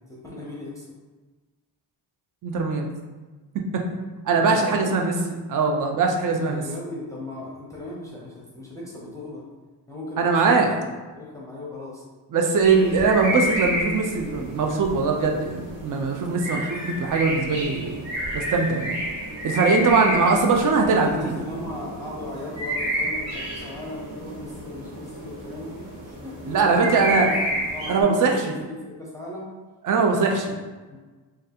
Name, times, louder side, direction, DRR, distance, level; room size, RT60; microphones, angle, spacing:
voice 1, 0.1-0.9 4.4-5.1 6.3-9.4 9.9-10.9 11.1-12.0 20.9-27.3 27.7-29.5 30.9-31.0, left 1 dB, 5° left, -5 dB, 0.6 m, -37 dB
voice 2, 2.4-2.9 3.7-3.8 4.3-5.1 5.5-6.6 10.2-10.7 12.3-18.0 18.3-19.0 19.4-21.3 26.5-27.3 27.9-28.6 29.8-30.6, right 4 dB, 45° right, 2 dB, 0.5 m, -21 dB
sound 1, 12.6-28.0, equal, 85° right, 1.2 m, -31 dB
3.2 x 2.4 x 2.8 m, 1.3 s
cardioid pair, 100°, 44 cm